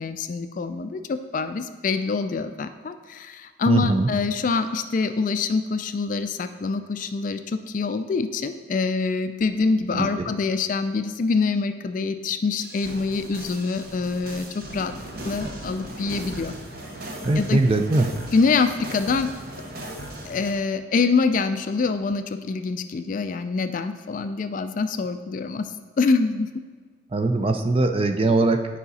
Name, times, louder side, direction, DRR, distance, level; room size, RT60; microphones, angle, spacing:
voice 1, 0.0-14.9 15.2-16.5 17.4-17.6 18.3-19.3 20.2-25.7 26.0-26.5, left 4 dB, 40° left, 10 dB, 0.3 m, -25 dB
voice 2, 3.7-4.1 9.9-10.1 17.2-18.2 27.1-28.8, right 2 dB, 30° right, 6 dB, 0.4 m, -21 dB
sound 1, 12.6-20.5, right 1 dB, 50° right, 1.0 m, -37 dB
9.5 x 4.9 x 4.1 m, 1.5 s
head